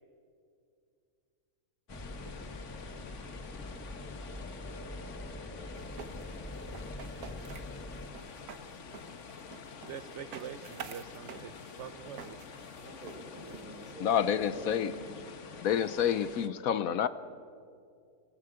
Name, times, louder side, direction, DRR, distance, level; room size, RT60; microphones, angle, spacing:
sound 1, 1.9-16.5, left 5 dB, 55° left, 1.4 m, -48 dB
sound 2, 1.9-8.1, left 1 dB, 10° left, 0.8 m, -44 dB
sound 3, 5.7-13.9, right 7 dB, 80° right, 1.6 m, -49 dB
voice 1, 9.8-12.4, right 8 dB, 55° right, 11 dB, 1.0 m, -44 dB
voice 2, 12.8-15.3, right 1 dB, 35° right, 1 dB, 4.7 m, -46 dB
voice 3, 14.0-14.9 15.6-17.1, left 9 dB, 70° left, 14 dB, 1.1 m, -28 dB
27.0 x 18.5 x 7.8 m, 2.4 s
omnidirectional pair, 1.6 m